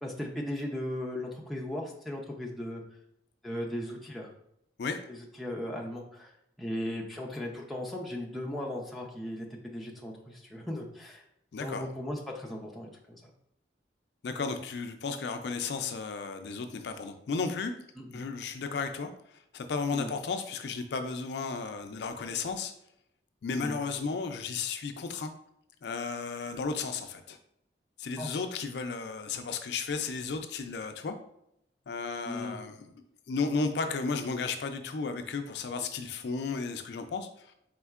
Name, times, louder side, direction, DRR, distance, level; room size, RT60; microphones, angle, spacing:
voice 1, 0.0-2.8 3.4-4.3 5.1-6.3 6.6-11.2 11.6-13.2 18.0-18.2 19.9-20.1 23.6-23.8 28.2-28.4 32.2-32.6, left 1 dB, ahead, 0 dB, 0.5 m, -37 dB
voice 2, 11.5-11.8 14.2-17.7 18.1-22.7 23.4-25.3 25.8-27.4 28.0-31.2 31.9-32.9 33.3-37.5, left 4 dB, 70° left, 7 dB, 0.4 m, -34 dB
4.3 x 3.6 x 2.4 m, 0.77 s
head